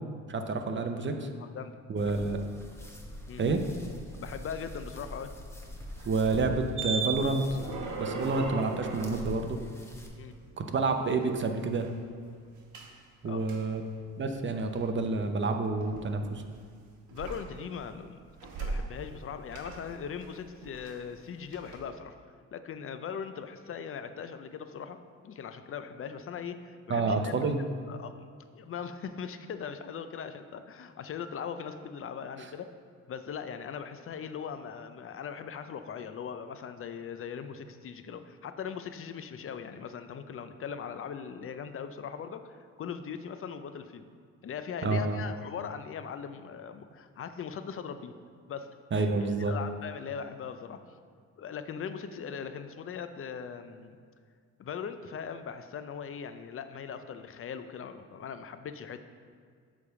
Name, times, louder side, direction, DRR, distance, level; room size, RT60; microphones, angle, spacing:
voice 1, 0.3-1.3 1.9-2.4 3.4-3.6 6.1-7.5 8.0-9.6 10.6-11.9 13.2-13.8 14.2-16.4 26.9-27.6 44.8-45.2 48.9-49.6, right 3 dB, 40° right, 5 dB, 0.7 m, -29 dB
voice 2, 1.4-1.8 2.0-2.3 3.3-3.4 4.1-5.3 10.2-10.4 13.2-13.4 17.1-18.3 18.6-22.2 22.5-25.0 25.2-28.3 28.5-32.7 33.1-44.1 44.4-48.2 48.5-50.8 51.4-54.0 54.6-59.0, left 7 dB, 45° left, 9 dB, 0.6 m, -40 dB
sound 1, 2.0-10.1, left 1 dB, 10° left, 1.0 m, -44 dB
sound 2, 5.5-10.5 10.9-12.0 12.7-12.9 13.5-13.6 14.3-14.8 15.8-16.6 17.1-17.9 18.2-19.2 19.5-21.2 21.5-21.8, right 4 dB, 75° right, 1.2 m, -38 dB
8.5 x 3.5 x 6.7 m, 2.1 s
cardioid pair, 90°, 30 cm